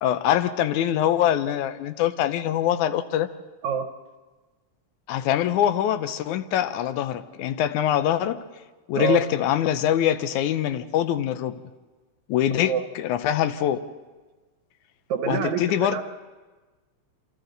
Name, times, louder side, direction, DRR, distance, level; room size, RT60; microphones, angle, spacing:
voice 1, 0.0-3.3 5.1-8.4 8.9-11.6 12.3-13.8 15.3-16.0, left 11 dB, 80° left, 11 dB, 2.2 m, -24 dB
voice 2, 15.1-15.6 15.9-16.0, right 7 dB, 75° right, 6 dB, 2.3 m, -25 dB
27.5 x 27.0 x 4.0 m, 1.3 s
omnidirectional pair, 3.4 m